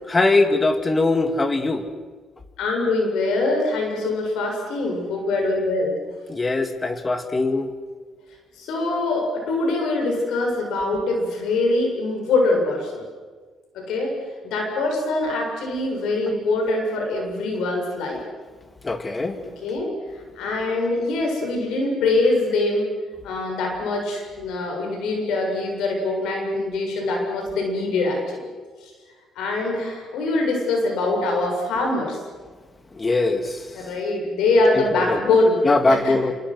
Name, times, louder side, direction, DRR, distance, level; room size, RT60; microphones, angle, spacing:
voice 1, 0.1-1.9 6.3-7.7 18.8-19.4 33.0-33.6 34.8-35.2 35.6-36.3, left 2 dB, 25° left, 8 dB, 2.4 m, -21 dB
voice 2, 2.6-5.9 8.6-13.0 13.7-14.1 14.4-18.2 19.4-19.9 20.4-22.9 23.2-28.2 29.4-32.2 33.7-35.6 35.9-36.1, left 2 dB, 85° left, 1 dB, 7.3 m, -23 dB
26.5 x 26.0 x 6.4 m, 1.5 s
cardioid pair, 90°, 0 cm